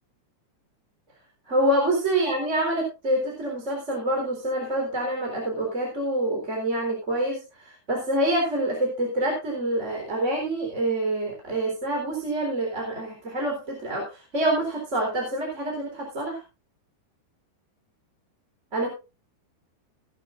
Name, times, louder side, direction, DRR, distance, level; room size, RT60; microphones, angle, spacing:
voice 1, 1.5-16.4 18.7-18.9, right 1 dB, 15° right, -1 dB, 3.7 m, -26 dB
18.0 x 11.5 x 2.5 m, 0.28 s
omnidirectional pair, 5.2 m